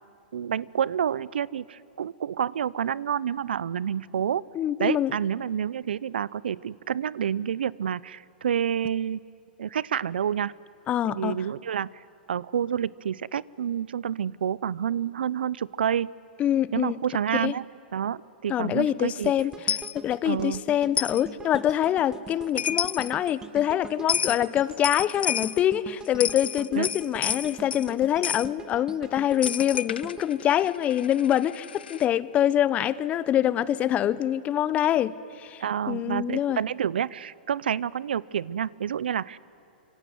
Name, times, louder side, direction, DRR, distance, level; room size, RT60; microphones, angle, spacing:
voice 1, 0.3-4.4 4.8-9.2 9.6-10.5 11.1-12.0 12.3-16.1 16.7-17.7 17.9-19.3 20.2-20.6 26.7-26.9 35.6-39.4, right 9 dB, 80° right, 22 dB, 0.6 m, -28 dB
voice 2, 4.5-5.1 10.9-11.4 16.4-17.0 17.4-17.5 18.5-36.6, left 11 dB, 25° left, 19 dB, 0.8 m, -25 dB
sound 1, 19.2-31.4 31.8-32.0, right 5 dB, 10° right, 0.7 m, -44 dB
Coin (dropping), 19.7-19.9 21.0-21.2 22.3-22.4 22.6-23.1 24.1-24.4 24.8-25.6 26.1-27.9 28.2-28.5 29.4-32.1, left 8 dB, 85° left, 0.6 m, -30 dB
25.5 x 23.5 x 9.4 m, 2.9 s
hypercardioid pair, 130°, 5 cm